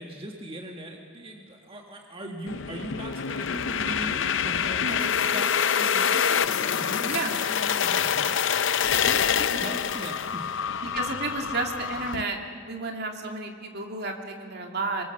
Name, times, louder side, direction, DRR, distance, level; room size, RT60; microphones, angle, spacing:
voice 1, 0.0-4.8 5.2-8.6 9.0-10.6 11.3-11.5, right 1 dB, 25° right, 1 dB, 1.6 m, -40 dB
sound 1, 2.5-12.2, left 7 dB, 65° left, 0.6 m, -26 dB
voice 2, 10.8-15.0, right 3 dB, 50° right, 3 dB, 2.5 m, -32 dB
26.5 x 23.5 x 7.0 m, 2.2 s
head